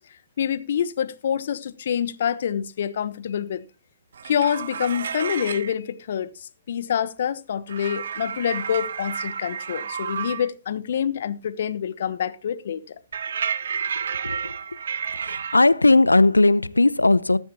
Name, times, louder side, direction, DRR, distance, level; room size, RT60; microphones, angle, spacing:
voice 1, 0.4-3.6 4.3-6.3 6.7-12.8, left 8 dB, 55° left, 1.0 m, -26 dB
sound 1, 4.1-5.7 7.7-10.5 13.1-15.6, right 7 dB, 60° right, 0.7 m, -31 dB
voice 2, 13.7-14.6 15.2-17.4, left 2 dB, 85° left, 0.6 m, -18 dB
20.0 x 7.2 x 2.8 m
figure-of-eight pair, 125°, 0 cm